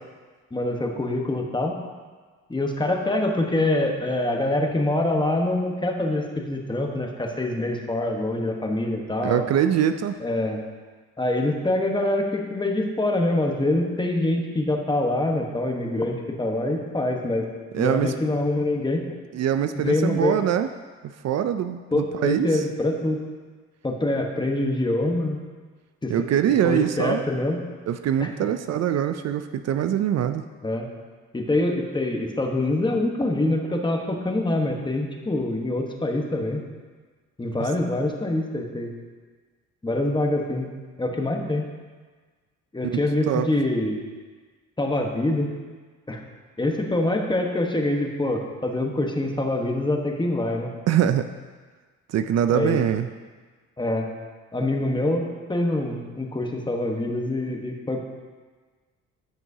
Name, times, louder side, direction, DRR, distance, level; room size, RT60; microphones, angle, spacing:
voice 1, 0.5-1.8 2.5-9.4 10.2-10.6 11.2-17.5 17.8-19.1 19.7-20.4 21.9-23.2 23.8-25.4 26.0-26.1 26.6-27.6 30.6-30.9 31.3-36.6 37.4-38.9 39.8-40.7 41.0-41.7 42.7-44.0 44.8-45.5 46.1-46.2 46.6-50.7 52.5-52.8 53.8-54.1 54.5-58.0, left 1 dB, 15° left, 2 dB, 1.1 m, -25 dB
voice 2, 9.2-10.2 17.7-18.1 19.3-20.7 21.2-22.6 26.1-27.3 27.9-30.5 37.6-37.7 42.8-43.0 43.3-43.5 50.9-51.3 52.1-53.1, right 10 dB, 60° right, 9 dB, 0.5 m, -23 dB
14.0 x 6.0 x 2.8 m, 1.4 s
cardioid pair, 90°, 30 cm